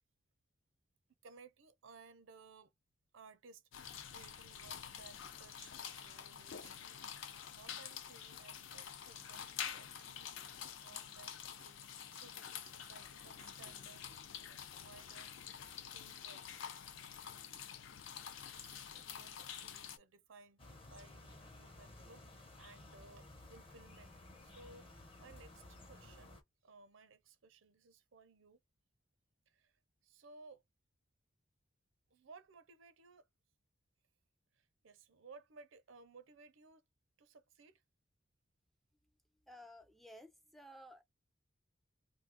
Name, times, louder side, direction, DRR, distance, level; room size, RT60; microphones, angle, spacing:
voice 1, 1.2-2.7 3.1-15.3 15.9-16.4 18.5-26.3 26.6-28.6 29.5-30.6 32.1-33.3 34.5-36.8 37.2-37.8, right 4 dB, 85° right, 0.6 m, -60 dB
sound 1, 3.7-20.0, left 8 dB, 85° left, 0.5 m, -48 dB
sound 2, 20.6-26.4, left 2 dB, 30° left, 0.7 m, -56 dB
voice 2, 39.5-41.0, equal, ahead, 0.3 m, -55 dB
2.7 x 2.3 x 3.5 m
head